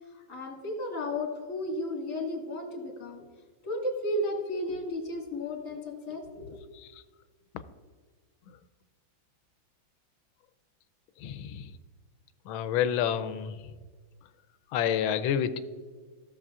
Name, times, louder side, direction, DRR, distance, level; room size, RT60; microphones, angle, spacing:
voice 1, 0.3-3.2 3.6-6.6, left 1 dB, 45° left, 0 dB, 2.0 m, -33 dB
voice 2, 11.2-11.7 12.5-13.5 14.7-15.6, left 9 dB, 85° left, 11 dB, 1.4 m, -28 dB
16.0 x 6.8 x 2.4 m, 1.4 s
omnidirectional pair, 2.1 m